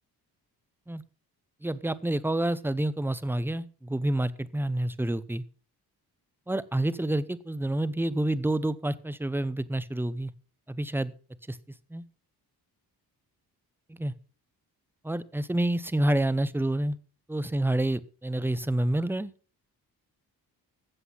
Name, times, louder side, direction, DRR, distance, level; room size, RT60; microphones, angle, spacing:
voice 1, 1.6-5.4 6.5-10.3 10.7-11.1 11.5-11.6 11.9-12.0 14.0-14.1 15.0-17.0 17.3-19.3, right 1 dB, 5° right, 16 dB, 0.7 m, -28 dB
14.5 x 7.7 x 5.6 m, 0.38 s
cardioid pair, 100°, 39 cm